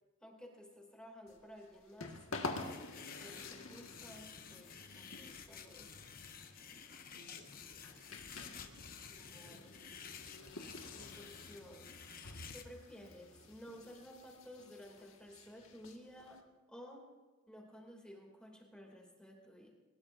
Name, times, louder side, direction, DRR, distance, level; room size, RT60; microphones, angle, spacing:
voice 1, 0.2-2.1 2.5-2.8 3.2-5.9 9.1-9.9 10.9-11.9 12.5-16.4 16.7-17.1 17.5-19.7, equal, 5° left, 0 dB, 2.7 m, -54 dB
sound 1, 1.3-16.4, left 3 dB, 80° left, 1.8 m, -50 dB
sound 2, 2.6-12.6, left 6 dB, 45° left, 1.1 m, -52 dB
voice 2, 7.1-8.4 9.4-9.7 10.3-11.1, right 1 dB, 75° right, 1 dB, 2.1 m, -63 dB
23.0 x 20.0 x 2.7 m, 1.3 s
head